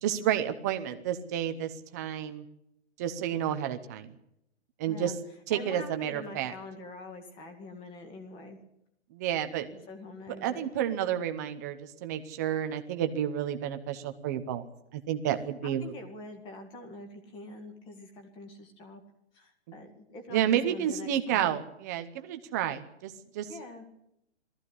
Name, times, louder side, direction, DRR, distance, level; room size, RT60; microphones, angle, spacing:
voice 1, 0.0-2.4 3.0-4.1 4.8-5.1 5.5-6.5 9.1-9.9 10.4-14.6 14.9-15.9 20.3-23.5, right 10 dB, 15° right, 8 dB, 0.7 m, -30 dB
voice 2, 5.5-8.6 9.9-10.7 15.6-19.0 19.3-21.5 23.5-23.9, left 2 dB, 15° left, 6 dB, 2.1 m, -45 dB
19.0 x 14.5 x 9.8 m, 0.81 s
hypercardioid pair, 170°, 35 cm